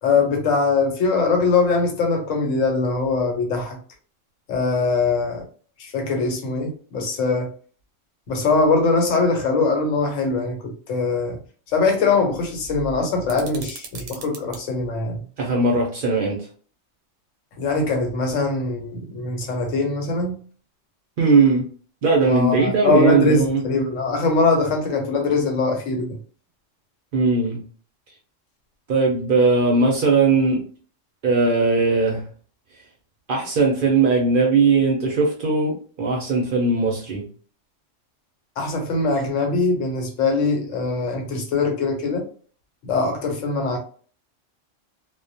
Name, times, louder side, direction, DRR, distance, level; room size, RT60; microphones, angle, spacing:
voice 1, 0.0-3.8 4.5-5.4 5.8-7.5 8.3-11.4 11.7-15.2 17.6-20.4 22.3-26.2 38.6-42.3 42.8-43.8, left 3 dB, 90° left, 1.1 m, -22 dB
sound 1, 13.3-14.6, right 5 dB, 85° right, 0.9 m, -39 dB
voice 2, 15.4-16.5 21.2-21.7 22.0-23.6 27.1-27.6 28.9-30.6 31.2-32.3 33.3-37.2, right 3 dB, 60° right, 0.6 m, -19 dB
2.2 x 2.1 x 2.6 m
omnidirectional pair, 1.3 m